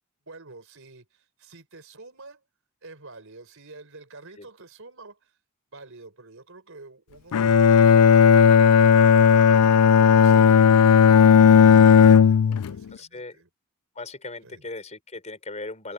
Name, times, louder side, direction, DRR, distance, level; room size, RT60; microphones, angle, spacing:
voice 1, 0.3-2.4 2.8-5.4 5.7-9.5 10.1-13.5 14.4-14.6, right 3 dB, 60° right, 5.0 m, -48 dB
Bowed string instrument, 7.3-12.8, left 7 dB, 90° left, 0.4 m, -15 dB
voice 2, 12.9-13.4 13.9-15.9, left 2 dB, 30° left, 4.9 m, -38 dB
head